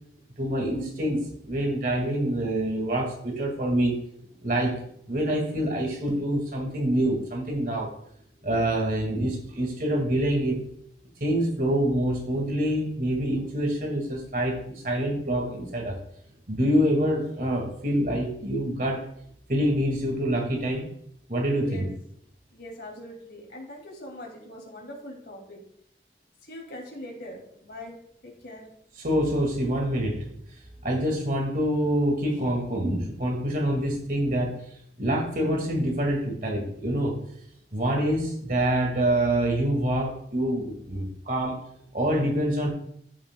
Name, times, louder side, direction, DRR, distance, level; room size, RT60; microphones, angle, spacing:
voice 1, 0.4-4.0 4.4-4.8 5.1-7.9 8.4-10.6 11.2-16.0 16.5-19.1 19.5-20.9 21.3-21.9 29.0-30.3 30.8-34.6 35.0-37.2 37.7-41.6 41.9-42.7, right 1 dB, 50° right, 1 dB, 1.8 m, -26 dB
voice 2, 21.5-21.9 22.5-25.6 26.4-28.0 28.2-28.7, left 1 dB, 75° left, -1 dB, 2.4 m, -42 dB
14.5 x 5.9 x 2.2 m, 0.70 s
head